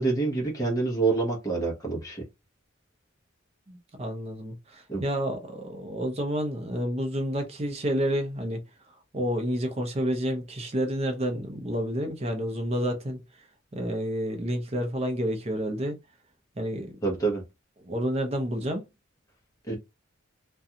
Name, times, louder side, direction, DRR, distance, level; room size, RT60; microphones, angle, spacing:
voice 1, 0.0-2.2 4.9-5.0 17.0-17.4 19.7-19.8, right 3 dB, 15° left, 0.8 m, -27 dB
voice 2, 3.7-8.6 9.1-13.2 13.7-16.0 16.6-16.9 17.8-18.8, equal, 30° right, 0.6 m, -29 dB
2.5 x 2.2 x 2.7 m
head